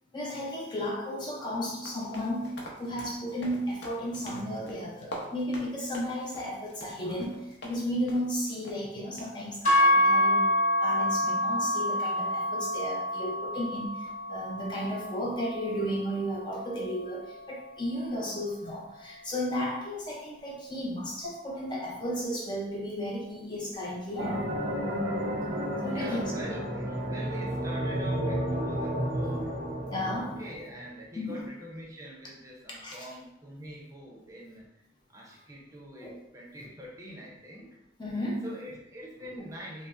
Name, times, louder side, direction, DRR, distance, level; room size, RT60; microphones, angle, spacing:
voice 1, 0.1-10.5 10.8-24.5 25.8-26.3 29.9-30.4 31.1-31.5 32.7-33.0 36.0-36.1 36.6-36.7 38.0-38.5 39.4-39.5, equal, 25° left, -2 dB, 0.4 m, -34 dB
sound 1, 1.8-7.8 8.1-8.3 8.6-8.8 9.2-9.3 9.8-10.1, equal, 75° left, 0.7 m, -45 dB
sound 2, 9.6-17.9, left 1 dB, 45° left, 0.8 m, -28 dB
sound 3, 24.2-30.9, equal, 75° right, 0.6 m, -32 dB
voice 2, 25.9-29.6 30.2-34.7 35.1-37.7 38.4-39.9, right 1 dB, 20° right, -2 dB, 0.6 m, -44 dB
5.2 x 2.0 x 2.4 m, 0.85 s
head